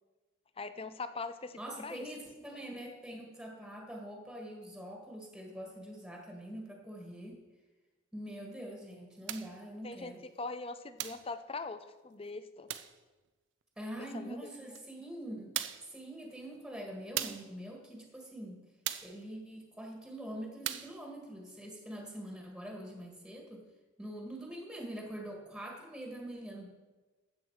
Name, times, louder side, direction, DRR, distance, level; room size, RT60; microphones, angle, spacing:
voice 1, 0.6-2.0 9.8-10.1 10.4-12.7 14.0-14.5, left 3 dB, 30° left, 11 dB, 0.5 m, -42 dB
voice 2, 1.6-7.4 8.1-10.2 13.8-15.5 15.9-18.6 19.0-23.6 24.0-26.7, right 1 dB, 5° right, 0 dB, 1.7 m, -44 dB
sound 1, 9.3-9.6 11.0-11.3 12.7-13.0 14.7-14.8 15.5-15.9 17.2-17.5 18.8-19.2 20.6-21.0, right 12 dB, 65° right, 0.6 m, -38 dB
13.0 x 8.2 x 4.7 m, 1.2 s
head